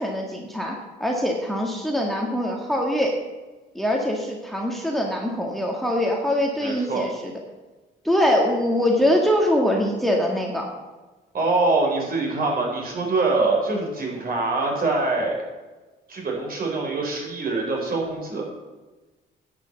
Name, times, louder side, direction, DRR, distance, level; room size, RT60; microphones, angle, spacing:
voice 1, 0.0-3.2 3.7-7.3 8.0-10.7, equal, ahead, 0 dB, 1.8 m, -23 dB
voice 2, 6.6-7.1 11.3-15.3 16.1-18.4, right 3 dB, 45° right, 0 dB, 4.6 m, -24 dB
10.5 x 6.5 x 8.2 m, 1.2 s
cardioid pair, 90°, 20 cm